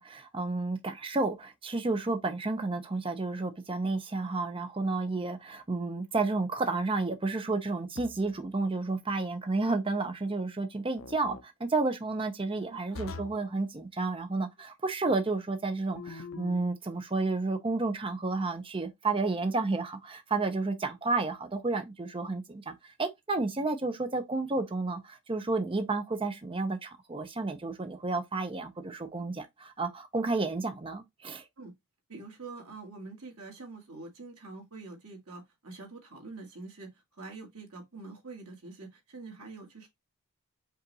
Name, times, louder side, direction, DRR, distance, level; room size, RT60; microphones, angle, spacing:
voice 1, 0.0-31.4, right 3 dB, 25° right, 0.5 m, -31 dB
sound 1, 7.9-8.4 11.0-11.4 12.9-13.5 15.9-16.7, left 3 dB, 65° left, 0.6 m, -43 dB
voice 2, 12.7-13.0 31.6-31.7 32.1-39.9, right 3 dB, 80° right, 1.8 m, -45 dB
5.4 x 2.5 x 3.9 m
head